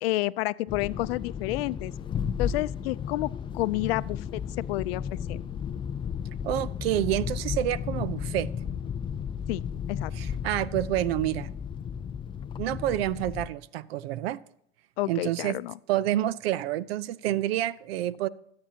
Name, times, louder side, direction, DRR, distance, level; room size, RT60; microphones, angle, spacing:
voice 1, 0.0-1.9 2.4-5.4 9.5-10.1 15.0-15.7, left 18 dB, 75° left, 0.5 m, -30 dB
sound 1, 0.7-13.5, left 7 dB, 15° left, 0.3 m, -34 dB
voice 2, 6.4-8.5 10.2-11.5 12.6-14.4 15.1-15.5 15.9-18.3, right 13 dB, 75° right, 0.7 m, -28 dB
24.0 x 8.7 x 2.9 m
supercardioid pair, 115°, 30 cm